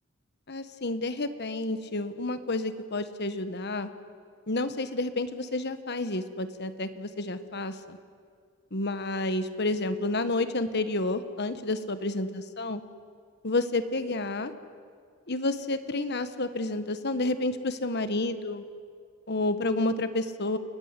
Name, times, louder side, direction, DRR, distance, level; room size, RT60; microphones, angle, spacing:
voice 1, 0.5-3.9 4.5-8.0 8.7-12.8 13.4-14.5 15.3-18.6 19.3-20.6, left 2 dB, 50° left, 10 dB, 1.4 m, -30 dB
29.5 x 16.5 x 9.8 m, 2.1 s
head